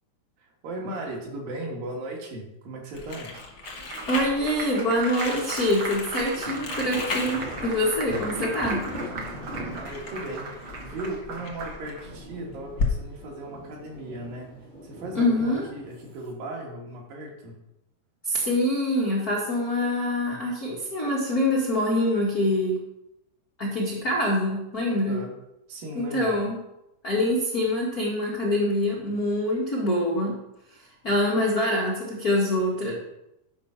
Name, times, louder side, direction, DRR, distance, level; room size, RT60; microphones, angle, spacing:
voice 1, 0.4-3.3 9.7-14.5 14.8-17.6 24.9-25.3 25.7-26.4, right 1 dB, 65° right, -1 dB, 3.4 m, -37 dB
Crumpling crinkling, 2.9-12.9, left 4 dB, 50° left, 1.3 m, -35 dB
Applause, 3.3-12.1, right 3 dB, 80° right, 1.1 m, -37 dB
voice 2, 4.1-8.8 15.1-15.7 18.2-22.8 23.6-25.2 25.9-26.6 27.0-30.3 31.0-32.9, left 1 dB, 90° left, -4 dB, 0.8 m, -25 dB
sound 1, 6.3-16.3, left 1 dB, 30° right, 0.8 m, -40 dB
11.5 x 5.1 x 5.7 m, 0.89 s
omnidirectional pair, 4.6 m